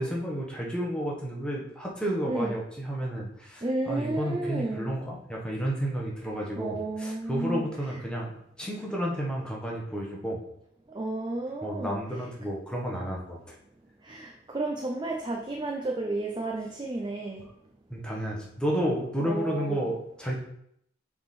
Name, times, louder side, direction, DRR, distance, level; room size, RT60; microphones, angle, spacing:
voice 1, 0.0-8.3 8.6-10.4 11.6-13.5 17.9-20.3, equal, 5° left, -3 dB, 1.2 m, -31 dB
voice 2, 3.6-4.9 6.6-7.6 10.9-12.0 14.0-17.5 19.2-19.8, right 2 dB, 25° right, 0 dB, 0.6 m, -32 dB
6.9 x 3.8 x 4.3 m, 0.73 s
head